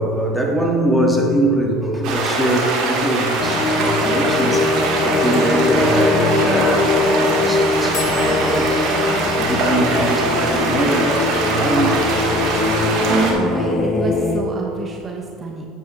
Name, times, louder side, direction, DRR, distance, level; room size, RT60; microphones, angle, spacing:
voice 1, 0.0-8.8 9.2-12.4, right 1 dB, ahead, 0 dB, 1.8 m, -22 dB
sound 1, 2.0-13.3, right 3 dB, 60° right, 2.1 m, -22 dB
sound 2, 3.4-14.4, left 3 dB, 35° left, 0.9 m, -21 dB
sound 3, 7.9-13.9, left 6 dB, 55° left, 1.1 m, -39 dB
voice 2, 13.1-15.7, right 4 dB, 30° right, 1 dB, 0.9 m, -26 dB
9.5 x 9.1 x 3.2 m, 2.6 s
hypercardioid pair, 80°, 0 cm